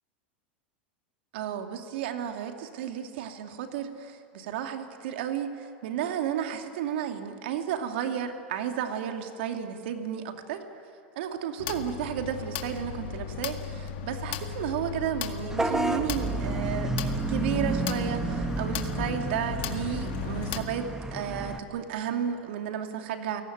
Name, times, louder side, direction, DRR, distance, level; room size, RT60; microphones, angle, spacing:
voice 1, 1.3-10.6 11.2-23.4, right 9 dB, 70° right, 5 dB, 2.6 m, -33 dB
sound 1, 11.6-20.6, left 8 dB, 65° left, 1.8 m, -36 dB
Vehicle horn car horn honking / Bus, 15.5-21.6, right 2 dB, 10° right, 1.8 m, -31 dB
29.5 x 18.0 x 9.4 m, 2.5 s
hypercardioid pair, 105°, 6 cm